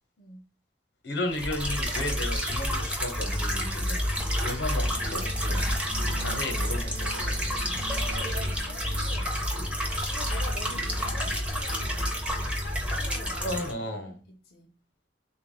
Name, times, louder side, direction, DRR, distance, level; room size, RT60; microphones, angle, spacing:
voice 1, 1.0-5.6 6.0-7.5 13.4-14.2, left 1 dB, 80° left, 0.9 m, -34 dB
sound 1, 1.3-13.7, equal, 5° right, 0.6 m, -29 dB
sound 2, 4.8-10.9, right 2 dB, 55° right, 0.6 m, -47 dB
voice 2, 6.1-6.6 7.9-9.5 10.1-12.2 12.5-14.8, left 2 dB, 55° left, 0.6 m, -45 dB
3.5 x 2.4 x 3.7 m
head